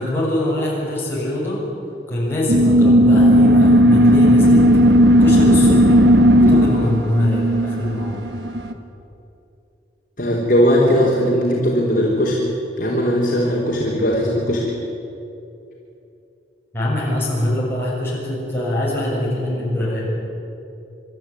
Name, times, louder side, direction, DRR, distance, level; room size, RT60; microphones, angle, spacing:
voice 1, 0.0-1.6 2.1-4.7 5.2-6.0 6.3-8.2 16.7-20.1, left 1 dB, 10° left, -6 dB, 7.0 m, -23 dB
sound 1, 2.5-8.7, equal, 75° right, 1.6 m, -13 dB
voice 2, 10.2-12.4 12.8-14.6, equal, 45° left, -4 dB, 3.6 m, -18 dB
26.5 x 13.0 x 9.8 m, 2.8 s
head